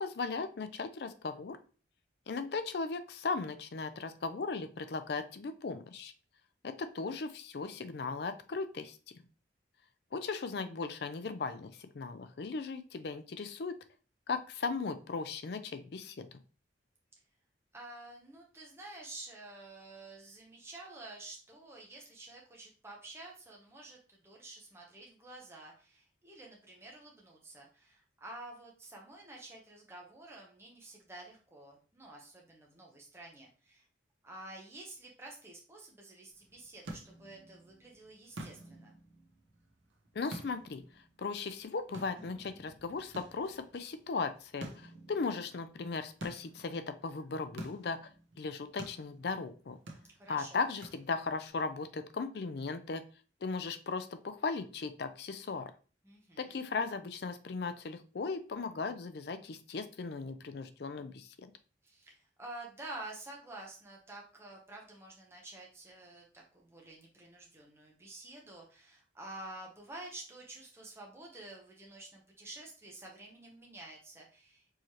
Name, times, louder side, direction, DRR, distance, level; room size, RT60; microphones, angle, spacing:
voice 1, 0.0-1.6 2.3-6.1 6.6-9.0 10.1-13.7 14.3-16.3 40.1-40.8 41.2-48.0 48.4-49.8 50.3-53.0 53.4-55.7 56.4-61.5, left 4 dB, 60° left, 10 dB, 0.4 m, -37 dB
voice 2, 17.7-33.8 34.2-38.9 50.1-50.7 56.0-56.6 61.8-74.8, right 2 dB, 15° right, -2 dB, 0.8 m, -50 dB
sound 1, 36.3-51.5, right 1 dB, 85° right, 0.8 m, -51 dB
4.6 x 3.1 x 2.9 m, 0.37 s
head